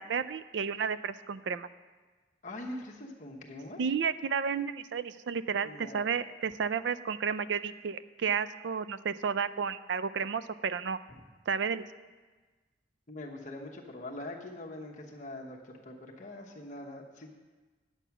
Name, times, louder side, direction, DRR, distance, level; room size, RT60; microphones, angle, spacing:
voice 1, 0.0-1.7 3.8-11.0 11.5-11.8, right 6 dB, 80° right, 15 dB, 0.4 m, -32 dB
voice 2, 2.4-3.8 5.6-6.1 13.1-17.3, left 1 dB, 45° left, 0 dB, 1.0 m, -43 dB
9.1 x 8.1 x 5.8 m, 1.3 s
head